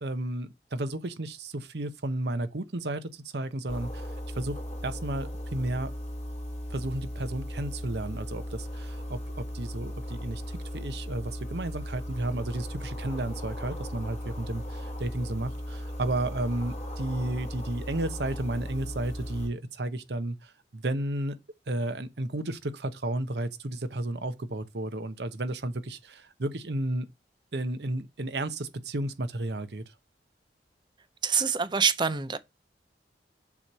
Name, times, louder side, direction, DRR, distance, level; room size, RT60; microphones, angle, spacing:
voice 1, 0.0-4.1 4.3-4.6 4.8-5.9 6.7-10.4 10.7-21.4 21.7-27.1 27.5-29.8, right 1 dB, 70° right, 0.9 m, -33 dB
sound 1, 3.7-19.5, equal, 40° left, 2.0 m, -37 dB
voice 2, 31.2-32.4, right 6 dB, 25° right, 0.6 m, -25 dB
7.1 x 3.2 x 5.4 m
head